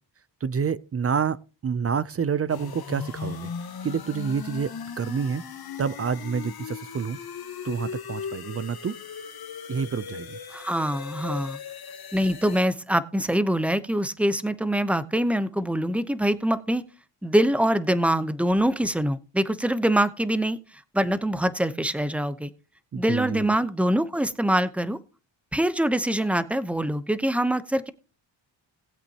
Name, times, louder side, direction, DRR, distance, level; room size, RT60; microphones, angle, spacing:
voice 1, 0.4-1.4 1.6-3.5 3.8-4.7 5.0-5.4 5.8-7.2 7.6-9.0 9.7-10.4 22.9-23.5, right 6 dB, 30° right, 0.5 m, -28 dB
sound 1, 2.5-12.7, left 6 dB, 50° left, 1.5 m, -38 dB
voice 2, 10.5-11.6 12.1-16.8 17.2-20.6 20.9-22.5 22.9-25.0 25.5-27.9, right 1 dB, 5° right, 0.8 m, -24 dB
19.0 x 8.1 x 2.9 m
cardioid pair, 95°, 47 cm